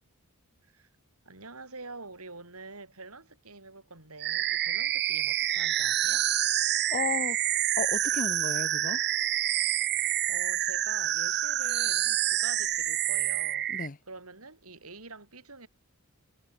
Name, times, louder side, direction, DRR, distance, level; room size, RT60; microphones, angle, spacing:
voice 1, 1.3-6.3 9.9-15.7, right 3 dB, 70° right, 7.1 m, -46 dB
sound 1, 4.2-13.9, right 13 dB, 50° right, 0.9 m, -27 dB
voice 2, 6.9-7.4 7.8-9.0 13.7-14.0, left 4 dB, 35° left, 0.9 m, -33 dB
head